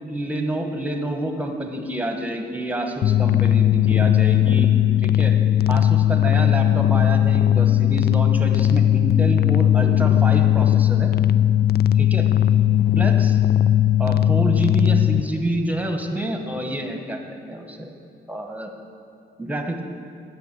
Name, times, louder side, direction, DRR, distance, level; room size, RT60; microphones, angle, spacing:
voice 1, 0.1-4.7 5.0-5.4 5.7-11.1 12.0-12.3 12.9-13.4 14.0-17.9 18.3-18.7 19.4-19.8, right 1 dB, 10° right, 4 dB, 1.2 m, -28 dB
sound 1, 3.0-15.2, left 11 dB, 50° left, 0.4 m, -18 dB
9.3 x 6.4 x 8.3 m, 2.5 s
cardioid pair, 90°, 20 cm